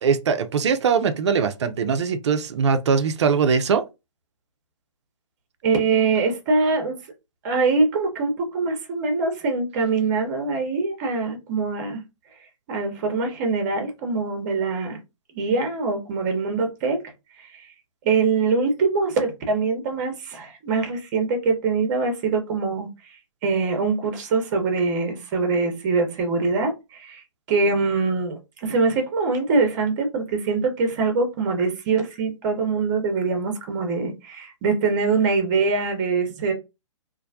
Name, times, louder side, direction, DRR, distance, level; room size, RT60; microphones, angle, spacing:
voice 1, 0.0-3.8, right 6 dB, 60° right, 0.5 m, -21 dB
voice 2, 5.6-7.0 7.4-12.0 12.7-15.0 15.3-17.0 17.4-17.7 18.0-22.9 23.4-27.2 27.5-36.5, right 4 dB, 35° right, 0.8 m, -23 dB
2.5 x 2.1 x 2.6 m
figure-of-eight pair, 125°, 16 cm